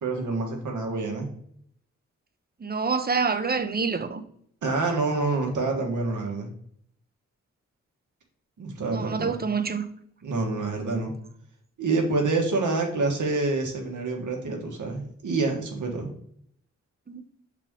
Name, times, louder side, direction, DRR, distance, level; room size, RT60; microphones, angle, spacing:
voice 1, 0.0-1.3 4.6-6.5 8.6-9.4 10.2-11.1 11.8-16.1, right 3 dB, 80° right, 1.4 m, -27 dB
voice 2, 2.6-4.2 8.8-9.8 17.1-17.2, right 5 dB, 30° right, 0.8 m, -27 dB
6.1 x 4.2 x 3.7 m
cardioid pair, 45°, 30 cm